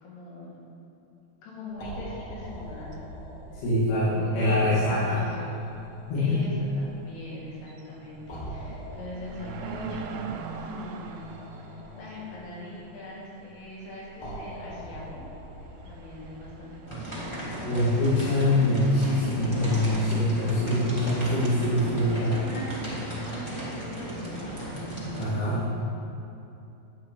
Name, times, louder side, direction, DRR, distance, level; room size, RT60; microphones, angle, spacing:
voice 1, 0.0-0.6 1.4-3.1 3.5-3.6 4.0-5.7 6.2-10.3 10.6-15.2 15.8-17.8 22.1-22.8 23.2-24.6 25.8-25.9, left 1 dB, 85° left, -6 dB, 4.6 m, -41 dB
sound 1, 1.7-19.9, right 1 dB, 50° left, 2.2 m, -45 dB
sound 2, 2.5-2.6 2.9-3.0 5.2-5.6 5.8-5.9 6.5-6.8 7.2-7.3 7.6-18.5, right 5 dB, 80° right, 2.3 m, -43 dB
voice 2, 3.6-5.2 6.1-6.4 17.6-22.3 25.2-25.6, left 1 dB, 70° left, -12 dB, 4.2 m, -24 dB
sound 3, 16.9-25.3, right 1 dB, 25° left, 0.5 m, -35 dB
11.5 x 8.9 x 4.7 m, 2.8 s
omnidirectional pair, 4.9 m